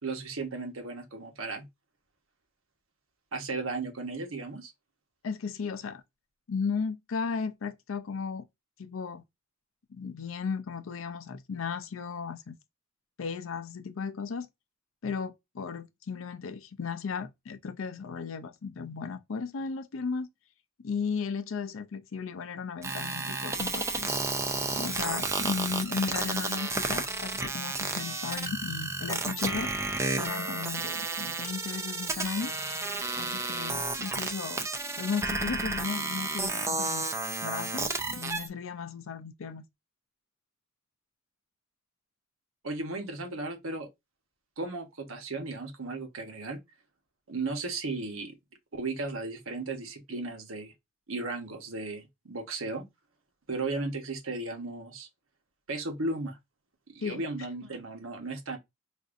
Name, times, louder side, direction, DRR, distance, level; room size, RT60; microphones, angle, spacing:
voice 1, 0.0-1.7 3.3-4.7 42.6-43.9 44.6-46.6 47.3-48.4 48.7-50.7 51.1-52.8 53.5-55.1 55.7-56.4 56.9-58.6, right 3 dB, 80° right, 1.0 m, -35 dB
voice 2, 5.2-6.0 6.5-8.4 8.8-9.2 9.9-12.6 13.2-14.5 15.0-20.3 20.8-24.1 24.7-29.7 30.2-32.5 33.2-34.7 35.0-37.1 37.4-39.6 57.0-57.2, left 5 dB, 75° left, 0.5 m, -35 dB
sound 1, 22.8-38.5, right 3 dB, 15° right, 0.4 m, -32 dB
4.9 x 2.6 x 2.5 m
head